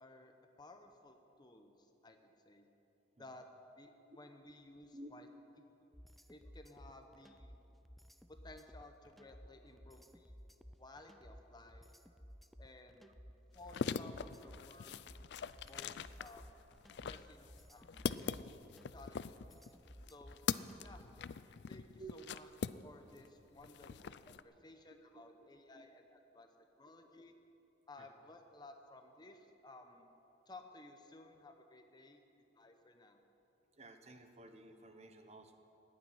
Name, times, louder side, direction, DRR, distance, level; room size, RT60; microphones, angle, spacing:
voice 1, 0.0-2.7 3.2-3.4 3.7-3.9 4.1-5.3 6.3-7.6 8.4-10.4 10.8-11.9 12.6-13.1 13.5-15.0 15.7-16.5 17.0-18.0 18.9-19.8 20.1-20.4 20.8-21.1 21.7-22.5 22.8-26.5 26.8-27.3 27.9-30.1 30.5-32.2 32.5-33.2, left 2 dB, 25° left, 5 dB, 0.9 m, -57 dB
sound 1, 5.9-21.2, equal, ahead, 0.4 m, -57 dB
sound 2, 13.5-23.3 23.6-24.4, left 6 dB, 65° left, 0.4 m, -42 dB
voice 2, 25.1-25.9 27.0-27.1 28.0-28.1 32.0-32.1 33.7-35.6, right 2 dB, 35° right, 7 dB, 1.1 m, -55 dB
14.5 x 8.9 x 9.8 m, 2.9 s
head